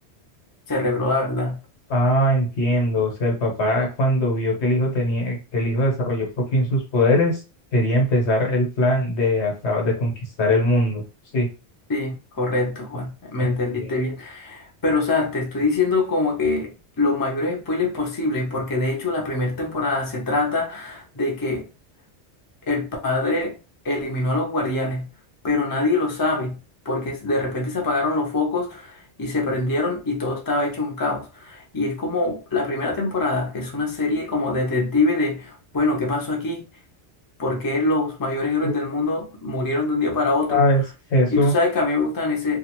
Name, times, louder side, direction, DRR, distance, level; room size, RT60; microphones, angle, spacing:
voice 1, 0.7-1.6 11.9-21.7 22.7-23.6 23.8-25.1 25.4-26.6 26.8-36.7 37.4-40.6 41.3-42.6, left 2 dB, 25° left, 0.6 m, -24 dB
voice 2, 1.9-6.3 6.5-7.4 7.7-11.0 11.3-11.5 13.4-13.9 38.6-38.7 40.5-40.8 41.1-41.5, left 1 dB, 75° left, 1.3 m, -21 dB
2.4 x 2.4 x 2.9 m
omnidirectional pair, 1.1 m